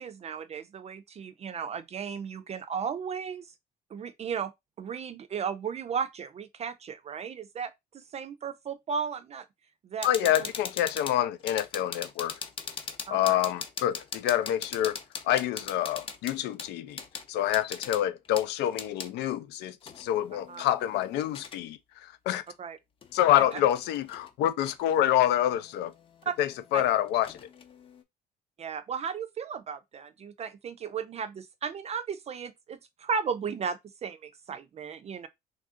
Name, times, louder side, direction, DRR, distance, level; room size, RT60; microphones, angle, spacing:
voice 1, 0.0-3.5 3.9-4.5 4.8-9.4 9.8-10.5 13.1-13.4 20.5-20.6 22.6-22.8 23.5-23.6 26.3-26.4 26.7-26.8 28.6-35.3, right 6 dB, 40° right, 0.4 m, -35 dB
voice 2, 10.0-12.4 13.1-15.0 15.2-17.0 17.3-22.4 23.1-25.9 26.4-27.4, left 12 dB, 85° left, 0.5 m, -27 dB
sound 1, 10.0-19.1 19.8-21.6 22.5-22.6 23.0-24.3 24.6-24.8 25.2-28.0, left 5 dB, 30° left, 0.7 m, -41 dB
3.2 x 2.5 x 3.6 m
cardioid pair, 110°, 17 cm